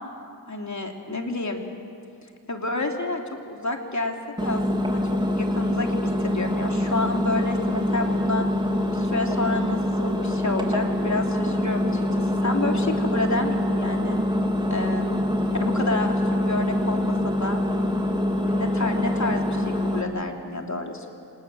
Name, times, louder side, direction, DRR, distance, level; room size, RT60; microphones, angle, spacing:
voice 1, 0.5-1.6 2.5-5.0 5.4-8.5 8.9-14.2 14.7-15.3 15.6-17.6 18.4-21.1, left 2 dB, 40° left, 3 dB, 3.1 m, -30 dB
Engine, 4.4-20.0, left 1 dB, 10° right, 2.9 m, -24 dB
26.5 x 20.0 x 7.7 m, 2.6 s
cardioid pair, 50°, 43 cm